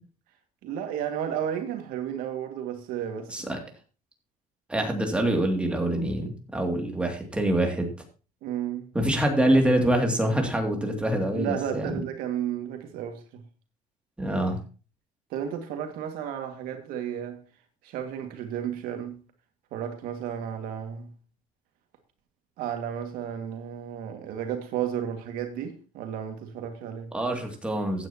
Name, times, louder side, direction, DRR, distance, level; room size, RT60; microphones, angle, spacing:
voice 1, 0.6-3.5 8.4-8.9 11.3-13.4 15.3-17.4 17.8-19.2 19.7-21.1 22.6-27.1, right 9 dB, 85° right, 2.1 m, -33 dB
voice 2, 4.7-7.9 8.9-11.9 14.2-14.6 27.1-28.1, right 1 dB, 5° right, 2.6 m, -25 dB
15.5 x 9.4 x 2.9 m
cardioid pair, 145°, 15 cm